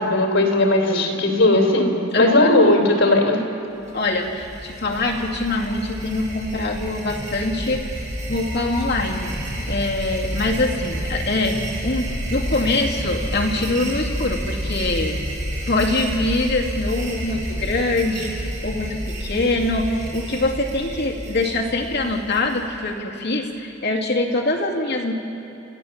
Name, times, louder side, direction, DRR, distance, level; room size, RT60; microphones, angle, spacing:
voice 1, 0.0-3.4, left 1 dB, 80° left, 1 dB, 3.5 m, -17 dB
voice 2, 2.1-2.5 3.9-7.9 8.3-9.3 9.7-15.2 15.7-25.1, left 2 dB, 55° left, 0 dB, 2.3 m, -24 dB
sound 1, 3.9-22.9, equal, 40° right, 6.9 m, -30 dB
28.5 x 14.5 x 7.2 m, 2.9 s
head